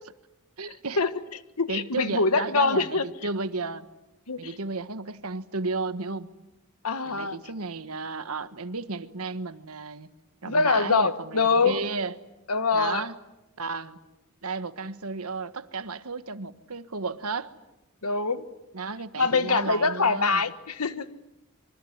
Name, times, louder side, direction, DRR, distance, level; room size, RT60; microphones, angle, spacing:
voice 1, 0.6-1.0 1.7-3.9 4.4-6.3 7.1-10.1 10.4-12.1 12.7-13.1 13.6-14.0 14.4-17.5 18.7-20.4, right 3 dB, 75° right, 12 dB, 1.4 m, -33 dB
voice 2, 1.6-3.1 4.3-4.4 6.8-7.4 10.4-11.8 12.5-13.1 18.0-18.4 19.2-21.1, left 4 dB, 90° left, 12 dB, 1.4 m, -24 dB
25.5 x 24.0 x 9.7 m, 0.96 s
head